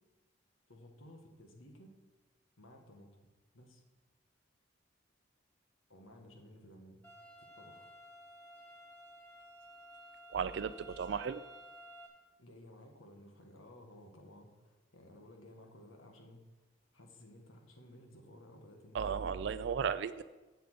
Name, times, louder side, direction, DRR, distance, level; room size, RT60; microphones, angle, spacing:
voice 1, 0.7-1.9 2.6-3.8 5.9-7.0 7.4-7.9 10.8-11.2 12.4-16.4 16.9-19.3, left 1 dB, 90° left, 2 dB, 1.6 m, -56 dB
sound 1, 7.0-12.1, equal, 10° left, 1.8 m, -54 dB
voice 2, 10.3-11.4 18.9-20.2, right 6 dB, 60° right, 12 dB, 0.3 m, -35 dB
7.2 x 6.9 x 7.9 m, 1.2 s
head